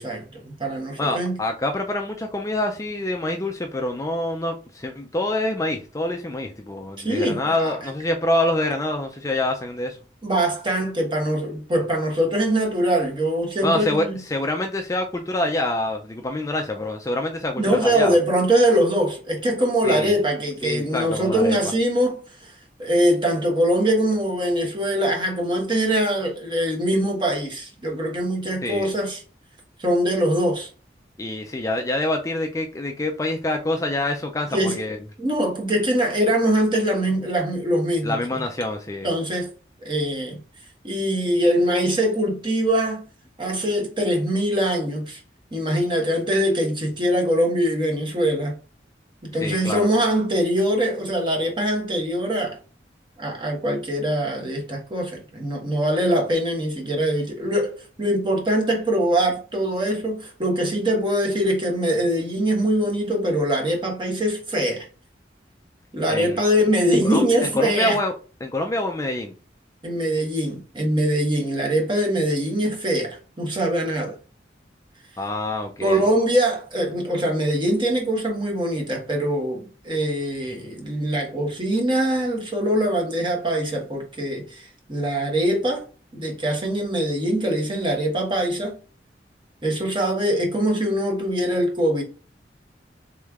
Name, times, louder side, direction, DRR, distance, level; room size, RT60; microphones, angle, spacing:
voice 1, 0.0-1.4 7.0-7.9 10.2-14.2 17.6-29.2 29.8-30.7 34.5-34.8 35.2-38.4 39.0-39.5 39.8-40.4 40.8-43.0 43.4-45.2 45.5-48.6 49.2-52.6 53.2-64.9 65.9-68.0 69.8-74.2 75.8-85.8 86.1-88.8 89.6-92.0, equal, 25° right, 1.2 m, -23 dB
voice 2, 1.0-10.0 13.6-18.2 19.8-20.1 20.6-21.6 28.6-28.9 31.2-35.0 38.0-39.1 49.4-49.9 66.1-66.4 67.0-68.1 68.4-69.3 75.2-76.0, left 1 dB, 20° left, 0.4 m, -26 dB
3.6 x 3.2 x 3.4 m
head